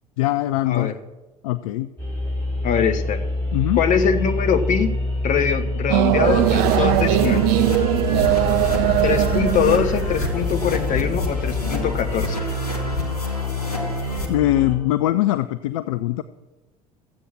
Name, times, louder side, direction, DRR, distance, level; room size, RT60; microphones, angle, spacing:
voice 1, 0.2-0.9 1.4-1.9 3.5-3.8 14.3-16.2, left 15 dB, 60° left, 12 dB, 0.5 m, -21 dB
sound 1, 2.0-14.8, left 1 dB, 10° left, 5.7 m, -28 dB
voice 2, 2.6-3.2 3.7-4.9 5.2-7.6 9.0-12.4, left 7 dB, 40° left, 8 dB, 1.3 m, -22 dB
sound 2, 5.9-11.0, right 18 dB, 50° right, 0.4 m, -20 dB
sound 3, 6.3-14.3, left 3 dB, 85° left, 2.0 m, -26 dB
14.5 x 8.4 x 6.1 m, 1.1 s
figure-of-eight pair, 65°, 19 cm